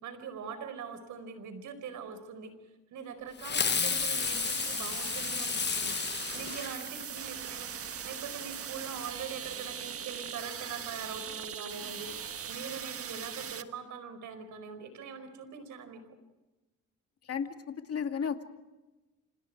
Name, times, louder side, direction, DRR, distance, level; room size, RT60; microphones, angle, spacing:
voice 1, 0.0-2.5 2.9-6.0 6.3-7.7 8.0-16.0, right 6 dB, 80° right, 10 dB, 4.8 m, -42 dB
Fireworks, 3.4-7.3, left 6 dB, 35° left, 1.1 m, -32 dB
sound 1, 3.6-13.6, right 8 dB, 50° right, 1.5 m, -40 dB
voice 2, 17.2-18.4, left 7 dB, 50° left, 6 dB, 2.5 m, -34 dB
29.5 x 27.5 x 4.8 m, 1.1 s
cardioid pair, 90°, 30 cm